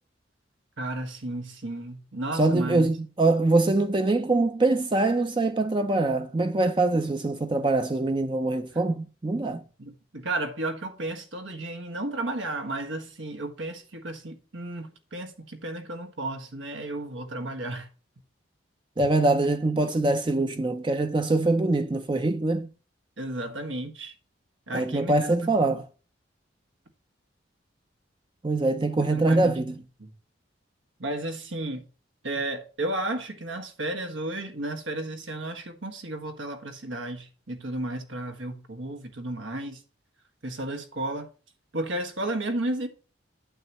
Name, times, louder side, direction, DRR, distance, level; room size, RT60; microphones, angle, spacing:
voice 1, 0.8-2.9 9.8-17.9 23.2-24.1 24.7-25.8 29.1-30.1 31.0-31.9 32.2-39.8 40.4-41.3 41.7-42.9, right 2 dB, 85° right, 1.7 m, -33 dB
voice 2, 2.4-9.6 19.0-22.7 24.7-25.8 28.4-29.8, right 2 dB, 25° right, 0.5 m, -24 dB
9.0 x 7.5 x 3.0 m
head